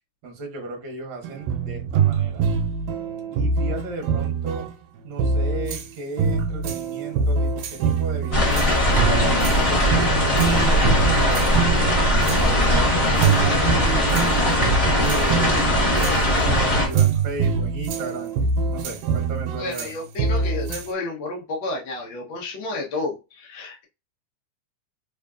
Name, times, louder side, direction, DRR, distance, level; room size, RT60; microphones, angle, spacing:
voice 1, 0.2-2.4 3.3-4.7 5.0-8.7 9.2-10.0 10.2-12.6 13.0-18.3 18.7-19.9, right 3 dB, 60° right, 1 dB, 1.3 m, -34 dB
sound 1, 1.2-5.9 6.2-20.9, right 5 dB, 80° right, 1.7 m, -25 dB
sound 2, 8.3-16.9, left 1 dB, 25° left, 1.4 m, -20 dB
voice 2, 19.6-23.9, left 2 dB, 85° left, -1 dB, 1.0 m, -31 dB
3.7 x 3.6 x 2.3 m, 0.28 s
omnidirectional pair, 3.4 m